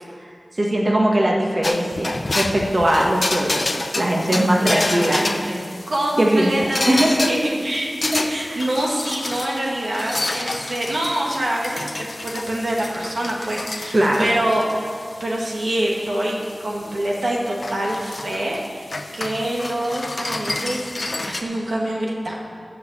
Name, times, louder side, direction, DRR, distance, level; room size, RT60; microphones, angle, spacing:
voice 1, 0.5-5.2 6.2-7.3 13.9-14.3, right 1 dB, 50° right, -2 dB, 1.6 m, -20 dB
sound 1, 1.6-21.4, left 2 dB, 60° left, 0.8 m, -30 dB
voice 2, 4.3-5.6 5.9-7.9 8.3-11.9 12.2-20.9 21.2-22.3, right 1 dB, 85° right, -3 dB, 2.0 m, -25 dB
13.0 x 5.6 x 8.2 m, 2.2 s
wide cardioid pair, 45°, 0 cm